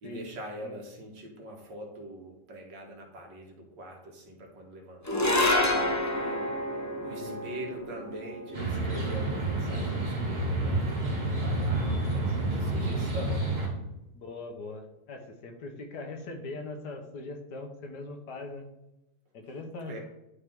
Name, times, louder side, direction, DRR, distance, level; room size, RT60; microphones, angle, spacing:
voice 1, 0.0-6.6 7.0-13.6 19.9-20.0, right 1 dB, 90° right, 1 dB, 2.2 m, -43 dB
sound 1, 5.0-11.5, left 1 dB, 20° left, 0.4 m, -30 dB
sound 2, 8.5-13.7, right 2 dB, 25° right, 1.8 m, -29 dB
voice 2, 14.1-18.7 19.3-20.0, left 3 dB, 70° left, 4 dB, 1.6 m, -41 dB
10.5 x 4.5 x 3.6 m, 0.92 s
omnidirectional pair, 1.9 m